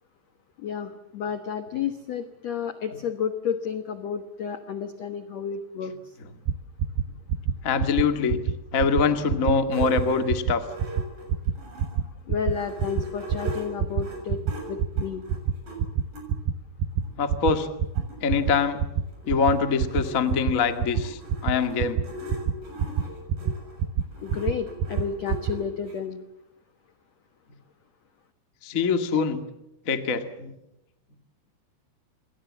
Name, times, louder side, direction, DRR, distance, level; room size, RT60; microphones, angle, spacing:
voice 1, 0.6-6.1 12.3-15.3 24.2-26.2, left 7 dB, 75° left, 9 dB, 1.5 m, -31 dB
sound 1, 6.5-6.6 6.8-7.0 7.3-7.5 7.8-8.0 8.3-8.5 8.8-9.0 9.3-9.5 9.8-10.0 10.3-10.5 10.8-11.0 11.3-11.5 11.8-12.0 12.3-12.5 12.8-13.0 13.3-13.5 13.8-14.0 14.3-14.5 14.8-15.0 15.3-15.5 15.8-16.0 16.3-16.5 16.8-17.0 17.3-17.5 17.8-18.0 18.3-18.5 18.8-19.0 19.3-19.5 19.8-20.0 20.3-20.5 20.8-21.0 21.3-21.5 21.8-22.0 22.3-22.5 22.8-23.0 23.3-23.5 23.8-24.0 24.3-24.5 24.8-25.0 25.3-25.5, right 8 dB, 70° right, 2.6 m, -25 dB
voice 2, 7.6-8.4 8.7-10.6 17.2-17.7 18.2-18.8 19.3-22.0 28.6-29.4 29.8-30.5, left 5 dB, 40° left, 7 dB, 1.1 m, -24 dB
sound 2, 9.7-12.0 12.4-16.3 17.0-17.1 17.4-17.5 17.7-26.0, equal, 50° right, 8.6 m, -40 dB
28.0 x 22.0 x 7.5 m, 0.86 s
omnidirectional pair, 5.1 m